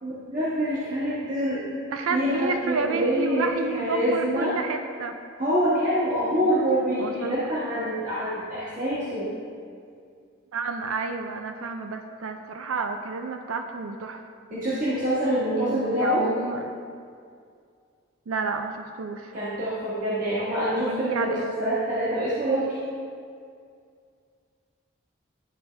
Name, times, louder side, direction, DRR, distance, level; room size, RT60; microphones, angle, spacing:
voice 1, 0.0-1.6 2.1-4.5 5.4-9.3 14.5-16.3 19.3-22.8, equal, 40° right, -11 dB, 1.3 m, -26 dB
voice 2, 1.9-5.1 7.0-7.4 10.5-14.2 15.6-16.8 18.3-19.3 20.7-21.4, right 4 dB, 90° right, 5 dB, 0.4 m, -30 dB
11.0 x 4.2 x 3.3 m, 2.3 s
head